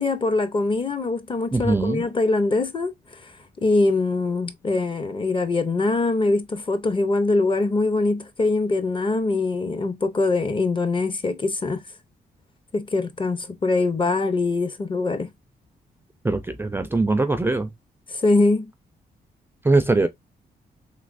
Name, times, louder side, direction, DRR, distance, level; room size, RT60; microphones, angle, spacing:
voice 1, 0.0-3.3 3.6-11.8 12.7-15.3 18.1-18.7, left 3 dB, 30° left, 0.7 m, -23 dB
voice 2, 1.5-2.0 16.2-17.7 19.6-20.1, right 3 dB, 15° right, 0.4 m, -21 dB
3.2 x 3.1 x 2.5 m
cardioid pair, 105°, 16 cm